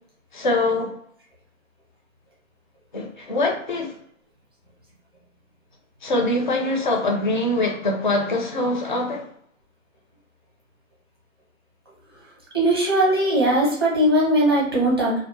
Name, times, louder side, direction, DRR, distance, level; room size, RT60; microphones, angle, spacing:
voice 1, 0.3-0.9 2.9-4.0 6.0-9.3, left 2 dB, 40° left, 0.5 m, -23 dB
voice 2, 12.5-15.2, right 1 dB, 20° right, 0.6 m, -19 dB
2.6 x 2.0 x 4.0 m
hypercardioid pair, 170°, 40 cm